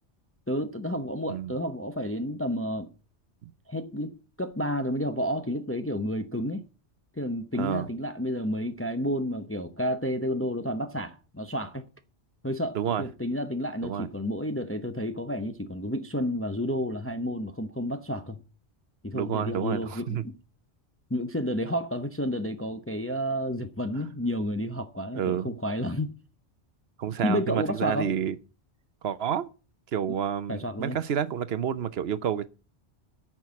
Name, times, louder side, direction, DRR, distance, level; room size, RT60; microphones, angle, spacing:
voice 1, 0.5-2.9 3.7-6.6 7.2-11.8 12.4-18.4 19.0-20.4 21.1-26.1 27.2-28.1 30.5-31.0, equal, 15° left, 0.7 m, -31 dB
voice 2, 19.1-20.2 25.1-25.5 27.0-28.4 29.0-29.5 29.9-32.4, right 9 dB, 65° right, 1.0 m, -29 dB
9.1 x 6.0 x 8.4 m
omnidirectional pair, 1.2 m